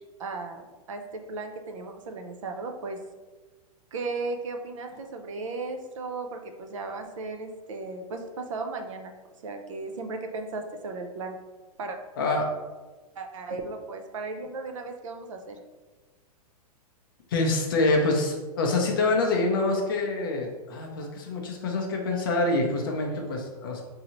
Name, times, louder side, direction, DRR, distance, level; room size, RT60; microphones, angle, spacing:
voice 1, 0.2-3.0 3.9-9.1 9.4-11.4 11.8-12.0 13.2-15.6, right 3 dB, 55° right, 5 dB, 0.5 m, -36 dB
voice 2, 12.2-12.5 17.3-23.8, left 2 dB, 35° left, 1 dB, 0.5 m, -26 dB
5.2 x 2.7 x 2.9 m, 1.2 s
supercardioid pair, 180°, 20 cm